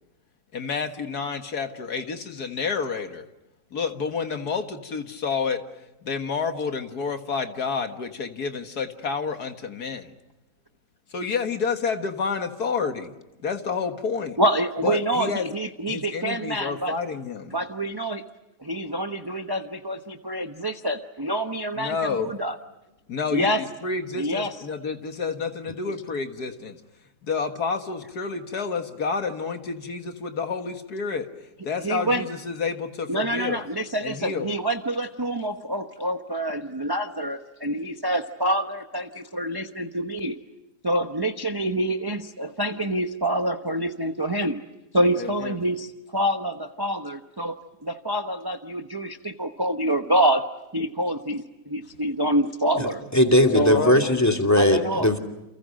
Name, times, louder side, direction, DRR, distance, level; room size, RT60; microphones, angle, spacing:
voice 1, 0.5-3.3 3.7-5.6 6.0-10.1 11.1-13.1 13.4-14.4 14.8-15.5 15.9-17.5 21.8-22.3 23.1-26.8 27.3-31.3 31.6-33.6 34.0-34.5 45.2-45.5 53.5-54.0, left 5 dB, 65° left, 6 dB, 2.1 m, -29 dB
voice 2, 14.4-17.0 17.5-18.2 18.6-22.6 23.3-23.6 24.1-24.6 25.9-26.0 31.8-32.3 33.1-40.4 40.8-44.6 44.9-47.6 47.8-50.4 50.7-53.0 53.5-53.9 54.6-55.1, right 1 dB, 15° right, 6 dB, 0.9 m, -26 dB
voice 3, 53.1-55.2, left 1 dB, 10° left, 3 dB, 2.6 m, -19 dB
30.0 x 28.5 x 6.4 m, 0.97 s
omnidirectional pair, 1.8 m